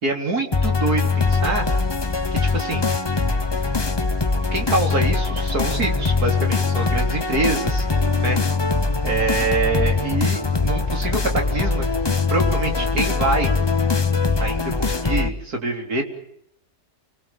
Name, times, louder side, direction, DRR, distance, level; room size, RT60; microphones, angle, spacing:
voice 1, 0.0-1.7 2.3-2.8 4.5-7.9 8.2-8.4 9.0-11.9 12.3-13.5 14.4-16.0, right 3 dB, 60° right, 3 dB, 4.1 m, -25 dB
sound 1, 0.5-15.3, left 4 dB, 20° left, 0.8 m, -22 dB
28.5 x 20.5 x 7.3 m, 0.74 s
omnidirectional pair, 1.8 m